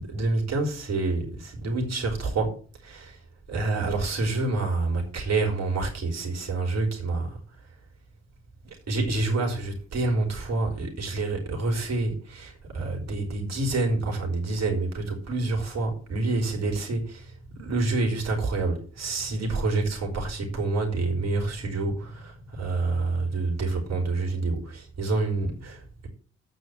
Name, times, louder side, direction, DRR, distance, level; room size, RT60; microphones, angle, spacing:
voice 1, 0.0-2.6 2.8-3.2 3.5-7.4 8.6-26.1, right 3 dB, 50° right, 5.2 m, -28 dB
9.4 x 6.3 x 7.9 m
hypercardioid pair, 45°, 33 cm